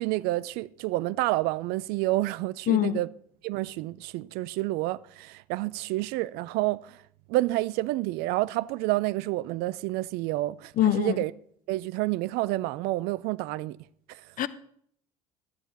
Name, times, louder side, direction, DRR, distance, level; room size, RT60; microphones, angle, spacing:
voice 1, 0.0-3.1 3.4-7.0 7.3-11.3 11.7-13.8 14.1-14.2, right 18 dB, 60° right, 0.5 m, -29 dB
voice 2, 2.7-3.0 10.8-11.2 14.4-14.5, left 13 dB, 50° left, 0.9 m, -23 dB
13.0 x 10.0 x 4.0 m
hypercardioid pair, 65°, 18 cm